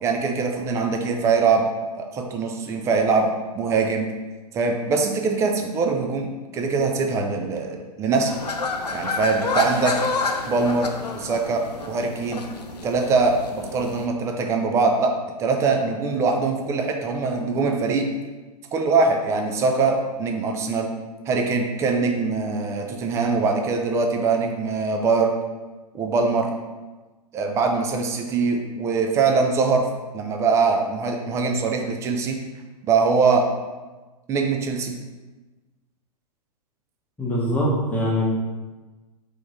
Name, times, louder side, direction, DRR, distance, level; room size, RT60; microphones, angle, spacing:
voice 1, 0.0-1.7 1.9-4.1 4.5-8.4 8.9-10.0 10.5-12.4 12.8-15.1 15.4-18.1 18.7-20.9 21.3-25.3 25.9-26.5 27.3-29.9 30.1-32.4 32.9-33.5 34.3-34.9, right 4 dB, 15° right, 3 dB, 0.4 m, -22 dB
sound 1, 8.3-14.1, left 3 dB, 85° left, 0.5 m, -29 dB
voice 2, 37.2-38.3, equal, 5° left, -4 dB, 1.0 m, -22 dB
3.4 x 3.1 x 4.1 m, 1.2 s
figure-of-eight pair, 110°, 20 cm